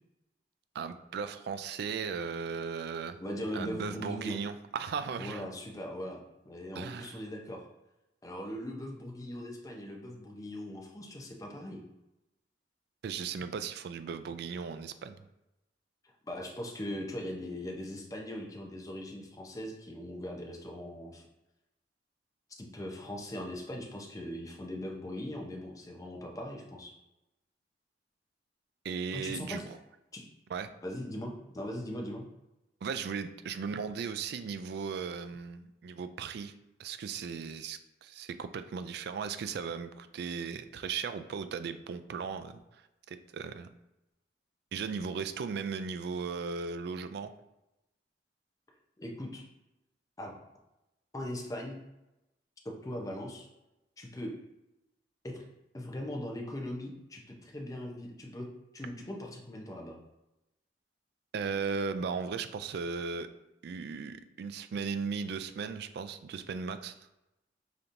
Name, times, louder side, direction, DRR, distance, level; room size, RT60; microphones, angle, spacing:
voice 1, 0.7-3.2 3.5-5.4 6.7-7.2 13.0-15.1 28.8-29.6 30.5-30.7 32.8-36.5 36.8-42.6 43.1-43.7 44.7-47.3 61.3-63.3 63.6-66.9, right 5 dB, 65° right, 10 dB, 0.3 m, -37 dB
voice 2, 3.2-4.4 5.2-7.7 8.2-11.8 16.2-21.2 22.6-26.9 29.1-29.7 30.1-30.3 30.8-32.2 49.0-49.4 50.2-50.3 51.1-51.8 52.6-53.5 54.0-54.3 55.2-55.4 55.7-58.5 58.7-60.0, left 1 dB, 20° left, 0 dB, 0.6 m, -40 dB
5.0 x 2.9 x 2.6 m, 0.92 s
head